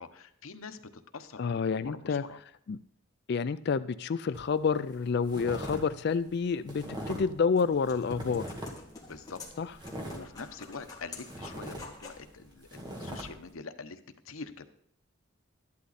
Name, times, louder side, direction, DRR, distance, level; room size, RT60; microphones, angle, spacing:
voice 1, 0.0-2.4 9.0-14.7, left 4 dB, 90° left, 9 dB, 1.0 m, -45 dB
voice 2, 1.4-2.2 2.7-2.8 3.3-8.5 9.6-9.7, left 5 dB, 55° left, 15 dB, 0.4 m, -29 dB
sound 1, 4.3-4.6 4.9-5.8 6.1-7.4 7.7-8.9 9.3-10.9 11.2-13.2, equal, 20° right, 2.3 m, -40 dB
sound 2, 7.3-12.3, left 3 dB, 20° left, 2.3 m, -49 dB
12.5 x 11.5 x 4.2 m, 0.69 s
head